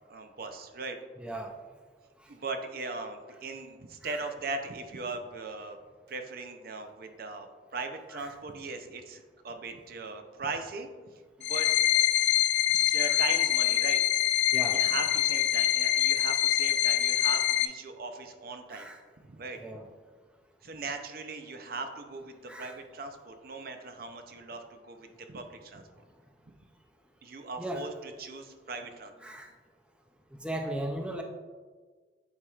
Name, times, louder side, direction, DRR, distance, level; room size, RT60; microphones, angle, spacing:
voice 1, 0.1-1.0 2.3-5.8 6.1-7.5 7.7-10.9 11.4-11.7 12.7-14.0 14.7-18.9 19.3-19.6 20.6-26.0 27.2-29.3, right 3 dB, 55° right, 6 dB, 0.6 m, -39 dB
voice 2, 1.2-1.5 4.0-4.2 13.0-13.2 14.5-14.8 18.7-19.0 19.6-19.9 22.5-22.7 27.6-27.9 29.2-29.5 30.4-31.2, right 1 dB, 5° right, 2 dB, 0.4 m, -37 dB
sound 1, 11.4-17.7, left 13 dB, 80° left, 0.3 m, -25 dB
8.7 x 4.6 x 2.4 m, 1.4 s
head